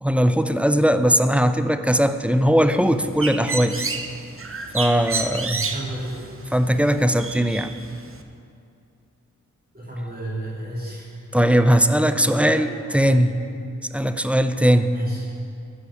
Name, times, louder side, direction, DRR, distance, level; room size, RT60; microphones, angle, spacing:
voice 1, 0.0-3.7 4.7-5.5 6.5-7.7 11.3-13.3 13.9-14.9, equal, 5° right, 10 dB, 0.6 m, -19 dB
Bird, 2.8-8.2, right 4 dB, 45° right, 0.9 m, -31 dB
voice 2, 5.4-6.2 9.7-11.3 11.8-12.0 12.2-12.6 13.1-13.3 14.9-15.2, right 1 dB, 25° right, -9 dB, 2.7 m, -32 dB
13.0 x 5.0 x 8.4 m, 2.4 s
cardioid pair, 40°, 31 cm